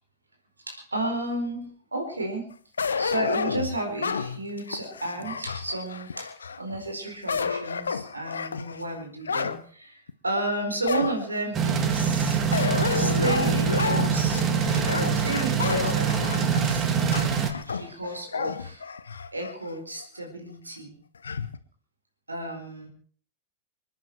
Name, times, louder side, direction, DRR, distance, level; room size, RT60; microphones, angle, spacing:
voice 1, 0.7-2.5 3.0-12.4 12.9-14.4 15.1-16.9 17.2-18.8 19.3-20.9 22.3-22.9, right 2 dB, 80° right, 3 dB, 4.4 m, -32 dB
sound 1, 2.8-6.6 7.1-9.6 10.1-10.2 10.9-11.5 12.5-19.6 20.0-20.1 21.2-21.6, left 5 dB, 70° left, 1.0 m, -30 dB
sound 2, 11.6-17.5, right 7 dB, 30° right, 2.1 m, -24 dB
27.5 x 10.0 x 4.6 m, 0.43 s
figure-of-eight pair, 90°, 0 cm